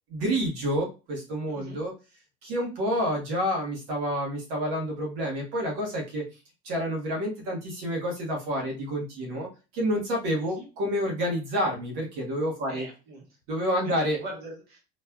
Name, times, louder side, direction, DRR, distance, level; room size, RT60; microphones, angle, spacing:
voice 1, 0.1-1.9 2.4-6.2 6.6-9.5 9.7-12.8 13.5-14.2, equal, 80° right, -1 dB, 1.5 m, -29 dB
voice 2, 1.5-1.8 10.4-10.7 12.7-13.3 13.8-14.8, right 2 dB, 55° right, -2 dB, 1.4 m, -42 dB
4.3 x 3.1 x 2.3 m, 0.30 s
cardioid pair, 135°, 20 cm